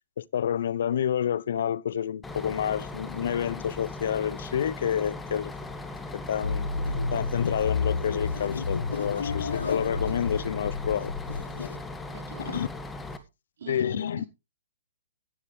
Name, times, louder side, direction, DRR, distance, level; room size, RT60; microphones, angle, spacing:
voice 1, 0.2-5.5 6.1-6.7 7.1-11.1 12.5-12.7 13.7-14.2, left 9 dB, 65° left, 0.6 m, -29 dB
Bus, 2.2-13.2, left 2 dB, 10° left, 1.8 m, -39 dB
sound 1, 6.4-11.8, left 4 dB, 80° left, 1.3 m, -31 dB
voice 2, 12.1-12.6 13.6-14.3, right 6 dB, 65° right, 4.5 m, -42 dB
14.0 x 10.5 x 3.3 m
hypercardioid pair, 130°, 0 cm